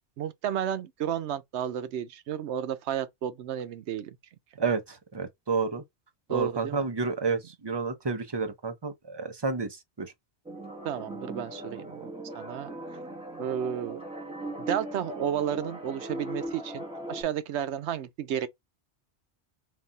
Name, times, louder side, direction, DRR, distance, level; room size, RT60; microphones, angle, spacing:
voice 1, 0.2-4.1 6.3-6.8 10.8-12.1 12.3-12.7 13.4-14.0 14.6-16.8 17.1-18.5, right 9 dB, 80° right, 0.9 m, -32 dB
voice 2, 4.6-5.8 6.3-10.1, right 4 dB, 30° right, 0.6 m, -30 dB
sound 1, 10.5-17.2, right 1 dB, 5° right, 0.9 m, -39 dB
3.9 x 2.4 x 3.9 m
omnidirectional pair, 1.2 m